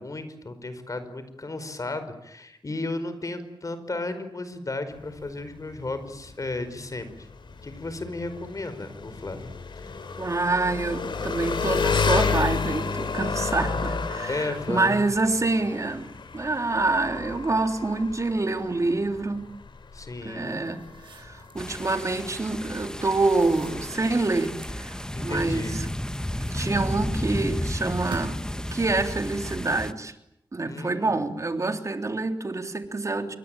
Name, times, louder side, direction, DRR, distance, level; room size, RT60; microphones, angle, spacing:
voice 1, 0.0-7.3 7.6-9.5 9.7-10.0 14.3-15.0 19.9-20.6 25.1-25.8 30.6-31.2, left 2 dB, 45° left, 11 dB, 5.0 m, -34 dB
Engine, 4.9-24.5, left 5 dB, 75° left, 3.5 m, -31 dB
voice 2, 10.2-19.5 20.2-20.8 21.1-25.9 26.5-30.1 30.5-33.3, right 3 dB, 40° right, 6 dB, 3.4 m, -27 dB
sound 1, 20.4-22.1 23.0-24.9 25.5-27.1 27.8-28.6, right 4 dB, 85° right, 5.7 m, -46 dB
sound 2, 21.6-29.9, left 1 dB, 10° left, 1.4 m, -32 dB
28.0 x 23.5 x 9.1 m, 0.79 s
cardioid pair, 70°, 8 cm